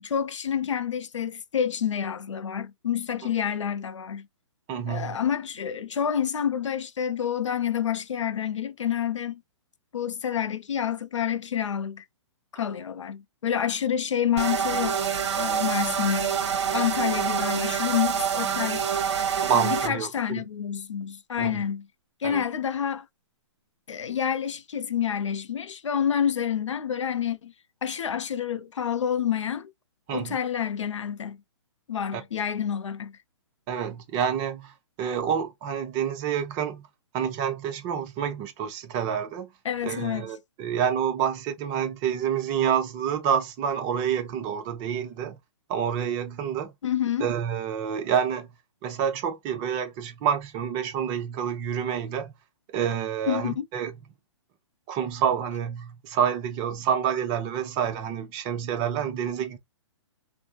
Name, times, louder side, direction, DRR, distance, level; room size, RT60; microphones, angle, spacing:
voice 1, 0.0-4.3 4.9-9.4 9.9-12.0 12.5-15.1 15.4-16.4 16.7-18.9 19.5-21.9 22.2-23.1 23.9-27.5 27.8-29.7 30.1-31.4 31.9-33.2 39.6-40.3 46.8-47.3 53.3-53.7, left 9 dB, 85° left, 0.5 m, -28 dB
voice 2, 4.7-5.2 19.4-20.4 21.4-21.6 22.2-22.4 30.1-30.4 32.1-32.2 33.7-36.9 37.1-39.5 39.8-45.4 45.7-46.7 47.2-48.5 48.8-52.3 52.7-54.0 54.9-59.6, right 8 dB, 25° right, 0.6 m, -28 dB
sound 1, 14.4-19.9, right 7 dB, 65° right, 0.8 m, -26 dB
3.4 x 2.1 x 2.4 m
hypercardioid pair, 135°, 15 cm